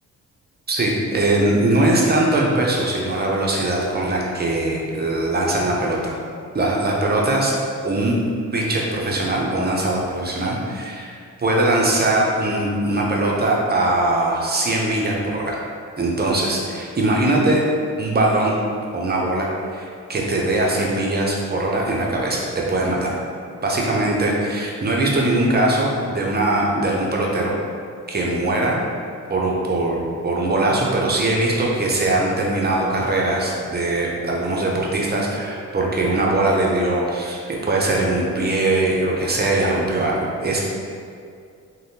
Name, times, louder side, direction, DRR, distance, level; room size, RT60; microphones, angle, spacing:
voice 1, 0.7-6.1 6.5-7.5 7.8-8.2 8.5-15.6 16.0-17.6 18.0-18.5 18.9-23.1 23.6-27.5 28.1-28.8 29.3-40.6, right 2 dB, 30° right, -2 dB, 0.6 m, -21 dB
3.3 x 2.2 x 2.7 m, 2.3 s
cardioid pair, 60°, 32 cm